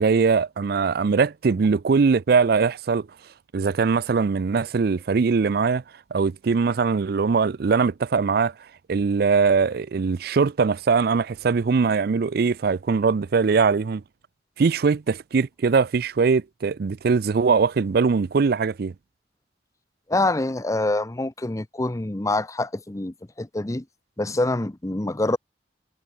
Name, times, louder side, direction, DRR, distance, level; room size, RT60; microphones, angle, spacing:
voice 1, 0.0-3.1 3.5-5.8 6.1-8.5 8.9-14.0 14.6-18.9, right 5 dB, 60° right, 0.4 m, -21 dB
voice 2, 20.1-23.8 24.2-25.4, left 2 dB, 20° left, 0.7 m, -25 dB
head